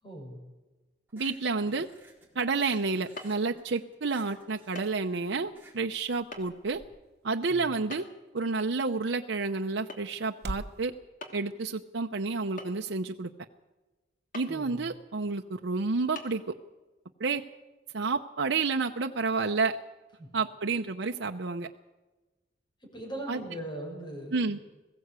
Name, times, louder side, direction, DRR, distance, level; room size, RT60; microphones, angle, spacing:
voice 1, 0.0-0.4 7.5-7.8 14.5-14.9 20.2-20.3 22.8-24.6, right 1 dB, 25° left, 0 dB, 6.8 m, -40 dB
sound 1, 1.1-6.8, right 2 dB, 10° right, 4.0 m, -55 dB
voice 2, 1.1-1.9 2.3-6.8 7.2-8.0 8.3-10.9 11.3-13.3 14.3-16.4 17.2-17.4 17.9-19.8 20.3-21.7 23.3-23.4 24.3-24.6, right 4 dB, 90° right, 4 dB, 0.8 m, -30 dB
sound 2, 3.2-3.4 4.8-5.0 5.3-5.4 6.3-6.4 7.9-8.3 9.9-10.2 10.5-10.6 11.2-11.5 12.6-13.1 14.3-14.6 15.2-15.3 16.2-16.3, left 2 dB, 45° left, 2.7 m, -43 dB
sound 3, 4.5-10.8, right 1 dB, 60° right, 1.2 m, -47 dB
21.5 x 15.5 x 8.2 m, 1.2 s
head